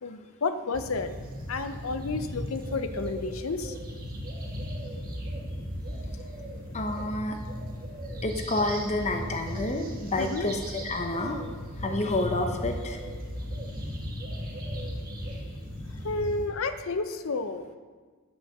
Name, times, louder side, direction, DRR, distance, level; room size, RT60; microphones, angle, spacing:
voice 1, 0.0-1.1 1.5-3.7 10.2-10.5 16.0-17.6, left 3 dB, 65° left, 10 dB, 0.6 m, -31 dB
sound 1, 0.7-16.5, equal, 40° right, 1.3 m, -37 dB
voice 2, 6.7-7.4 8.2-10.6 10.8-11.4 11.8-13.0, left 2 dB, 30° left, 4 dB, 0.8 m, -29 dB
9.2 x 5.7 x 6.5 m, 1.5 s
head